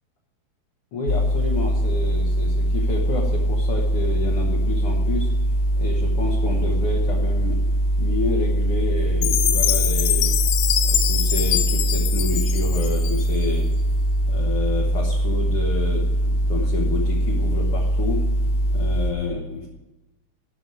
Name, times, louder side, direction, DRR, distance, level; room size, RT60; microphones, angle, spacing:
voice 1, 0.9-5.3 5.7-7.6 8.0-10.3 10.8-13.7 14.2-18.2 18.7-19.7, left 3 dB, 55° left, -2 dB, 1.7 m, -29 dB
sound 1, 1.1-19.1, right 1 dB, 35° left, 1.7 m, -22 dB
Chime, 9.2-13.5, left 12 dB, 80° left, 1.8 m, -24 dB
9.9 x 6.1 x 8.1 m, 0.99 s
omnidirectional pair, 4.0 m